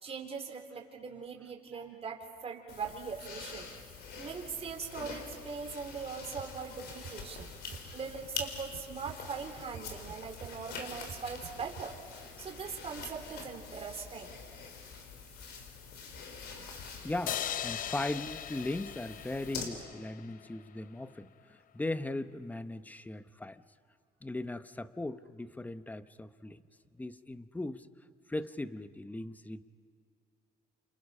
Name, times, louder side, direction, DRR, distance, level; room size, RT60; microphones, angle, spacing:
voice 1, 0.0-3.7 4.2-7.5 7.9-12.0 12.4-14.3, right 5 dB, 35° right, 2 dB, 3.7 m, -41 dB
sound 1, 2.7-19.6, left 5 dB, 75° left, 4.1 m, -45 dB
sound 2, 6.4-6.5 6.9-7.8 8.2-9.3 9.6-11.9, right 7 dB, 55° right, 3.3 m, -48 dB
voice 2, 16.5-23.6 24.2-26.6 26.9-27.9 28.3-29.6, left 2 dB, 10° left, 11 dB, 0.9 m, -38 dB
sound 3, 17.3-20.6, left 10 dB, 55° left, 0.7 m, -39 dB
29.5 x 28.0 x 5.6 m, 2.2 s
cardioid pair, 110°, 17 cm